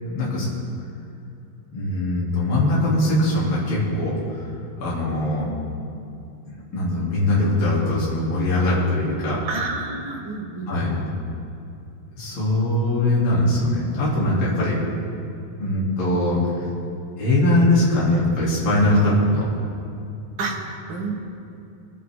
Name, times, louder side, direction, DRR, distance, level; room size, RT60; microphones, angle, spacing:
voice 1, 0.0-0.5 1.7-4.5 4.8-5.5 6.5-9.4 10.7-10.9 12.2-14.7 15.6-16.4 17.2-19.5, left 1 dB, 35° left, -7 dB, 3.4 m, -21 dB
voice 2, 9.4-10.9 12.3-12.5 18.9-19.1 20.4-21.1, right 3 dB, 40° right, -3 dB, 1.9 m, -30 dB
23.5 x 8.7 x 3.7 m, 2.7 s
omnidirectional pair, 4.5 m